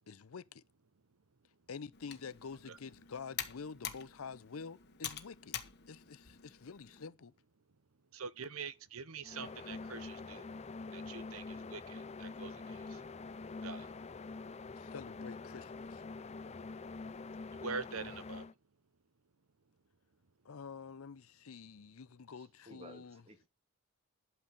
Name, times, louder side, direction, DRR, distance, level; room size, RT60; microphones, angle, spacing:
voice 1, 0.1-0.6 1.7-5.6 5.9-7.3 14.8-16.0 20.4-23.2, left 5 dB, 70° left, 0.6 m, -48 dB
Computer keyboard, 1.9-7.1, left 9 dB, 50° left, 1.5 m, -46 dB
voice 2, 8.1-10.5 10.9-13.0 13.6-13.9 17.5-18.5, right 5 dB, 70° right, 0.9 m, -45 dB
sound 1, 9.2-18.5, left 3 dB, 30° left, 0.5 m, -45 dB
voice 3, 22.4-23.5, equal, 30° right, 1.9 m, -55 dB
12.0 x 4.7 x 7.5 m
head